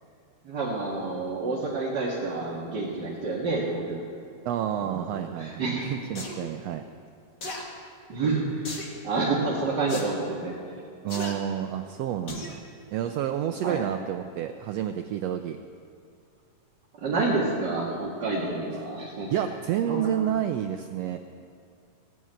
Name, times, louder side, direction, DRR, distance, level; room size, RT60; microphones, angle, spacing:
voice 1, 0.4-4.0 4.8-5.9 8.1-10.6 11.1-11.2 13.6-13.8 17.0-19.3 19.9-20.0, right 3 dB, 40° right, -6 dB, 2.0 m, -29 dB
voice 2, 4.4-6.8 11.0-12.6 12.9-15.6 19.3-21.2, right 10 dB, 85° right, 7 dB, 1.4 m, -29 dB
sound 1, 6.2-6.4 7.4-7.6 8.7-9.0 9.9-10.1 11.1-11.3 12.3-12.6 13.0-13.1, left 2 dB, 40° left, 2.0 m, -36 dB
17.5 x 9.5 x 8.9 m, 2.4 s
omnidirectional pair, 3.6 m